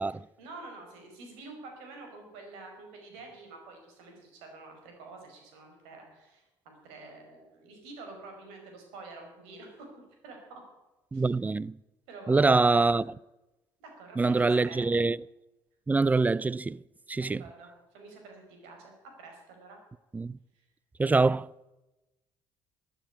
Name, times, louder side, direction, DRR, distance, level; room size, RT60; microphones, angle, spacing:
voice 1, 0.0-9.9 10.2-10.6 11.1-11.3 12.1-12.8 13.8-14.9 17.1-19.8, right 3 dB, 85° right, 5.1 m, -48 dB
voice 2, 11.1-11.7 12.3-13.1 14.2-15.2 15.9-16.8 17.1-17.4 20.1-20.4 21.0-21.5, right 3 dB, 15° right, 0.4 m, -24 dB
13.5 x 9.9 x 9.0 m
supercardioid pair, 75°, 10 cm